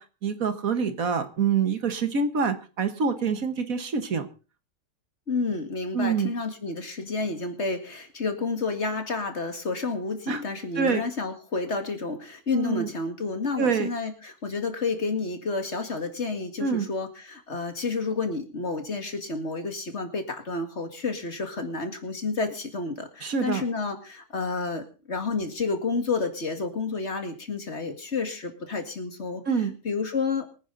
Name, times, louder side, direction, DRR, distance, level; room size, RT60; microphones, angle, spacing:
voice 1, 0.0-4.3 5.9-6.3 10.3-10.4 10.8-11.0 12.5-12.9 13.6-13.9 16.6-16.9 23.2-23.6 29.5-29.8, right 5 dB, 65° right, 9 dB, 1.8 m, -26 dB
voice 2, 5.3-29.4 29.8-30.5, left 4 dB, 45° left, 6 dB, 2.3 m, -30 dB
24.5 x 9.8 x 3.9 m, 0.35 s
omnidirectional pair, 1.6 m